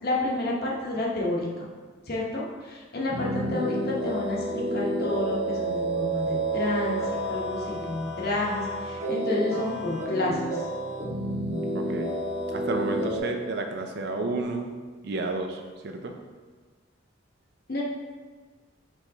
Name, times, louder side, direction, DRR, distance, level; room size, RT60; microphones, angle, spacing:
voice 1, 0.0-1.7 2.1-7.0 7.3-10.6 17.7-17.8, left 2 dB, 55° left, -3 dB, 0.9 m, -30 dB
sound 1, 3.1-13.2, right 1 dB, 85° right, 1.3 m, -30 dB
voice 2, 11.7-12.1 12.5-14.7 15.0-16.1, right 3 dB, 55° right, 4 dB, 0.4 m, -31 dB
4.5 x 4.3 x 2.7 m, 1.4 s
head